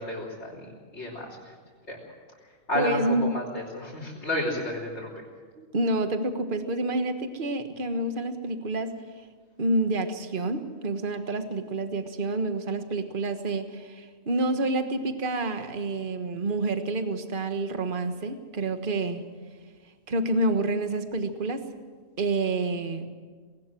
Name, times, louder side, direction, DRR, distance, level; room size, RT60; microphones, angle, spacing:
voice 1, 0.0-1.5 1.9-2.0 2.7-5.1, left 1 dB, 50° left, -6 dB, 4.0 m, -32 dB
voice 2, 2.7-3.4 5.6-9.0 9.6-19.2 20.1-21.6 22.2-23.1, right 2 dB, 35° right, 8 dB, 1.5 m, -28 dB
20.0 x 18.5 x 7.6 m, 1.5 s
omnidirectional pair, 1.5 m